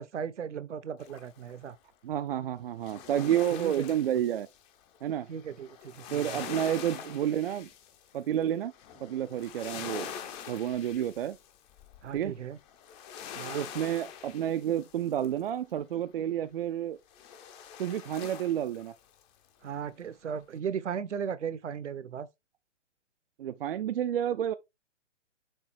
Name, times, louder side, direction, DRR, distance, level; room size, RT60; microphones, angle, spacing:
voice 1, 0.0-1.8 3.5-3.7 5.3-6.4 12.0-12.6 13.3-13.7 19.6-22.3, right 7 dB, 70° right, 0.9 m, -36 dB
sound 1, 1.0-1.6 2.7-15.5 17.1-19.2 19.6-19.7, left 8 dB, 15° left, 0.6 m, -44 dB
voice 2, 2.0-4.5 5.0-5.3 6.1-7.7 8.1-8.7 9.0-10.1 10.5-11.4 12.1-12.3 13.5-17.0 17.8-18.9 23.4-24.5, right 10 dB, 50° right, 0.5 m, -30 dB
6.6 x 3.6 x 4.3 m
hypercardioid pair, 130°, 37 cm